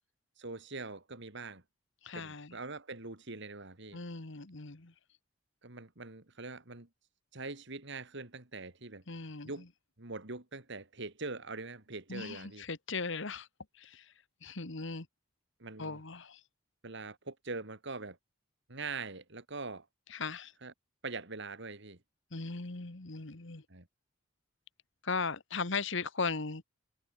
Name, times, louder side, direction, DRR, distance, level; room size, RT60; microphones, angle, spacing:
voice 1, 0.4-1.6 2.1-4.0 5.6-6.9 7.3-9.0 9.4-9.7 10.0-12.6 15.6-16.0 16.8-18.2 18.7-19.9 20.6-20.7 21.0-22.0 23.7-23.9, right 3 dB, 65° right, 2.9 m, -43 dB
voice 2, 2.0-2.6 3.9-4.9 9.1-9.6 12.1-13.5 13.8-14.1 14.4-15.1 15.8-16.4 20.1-20.5 22.3-23.6 25.0-26.6, left 4 dB, 65° left, 1.7 m, -38 dB
head